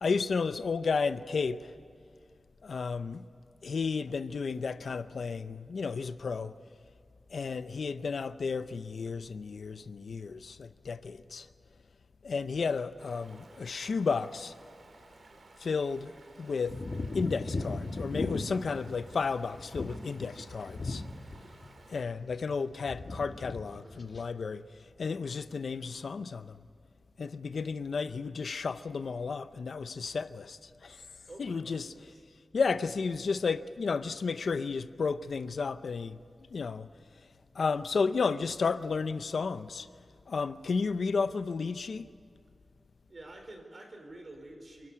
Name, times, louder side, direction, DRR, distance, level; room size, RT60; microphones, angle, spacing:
voice 1, 0.0-1.7 2.6-3.2 3.6-6.5 7.3-11.5 12.2-14.5 15.6-16.1 16.4-16.8 17.1-21.0 21.9-24.6 25.0-26.6 27.2-31.1 31.4-31.9 32.5-36.2 36.5-36.9 37.5-39.9 40.3-42.1, left 5 dB, 75° left, 0.7 m, -32 dB
Stream, 13.0-22.0, right 3 dB, 65° right, 2.5 m, -56 dB
sound 1, 16.7-21.7 21.9-22.6 22.8-23.6 23.9-24.3, left 3 dB, 50° left, 1.4 m, -37 dB
voice 2, 31.3-32.2 43.1-44.9, right 1 dB, 40° right, 4.6 m, -49 dB
28.0 x 12.0 x 9.9 m
wide cardioid pair, 125°, 0 cm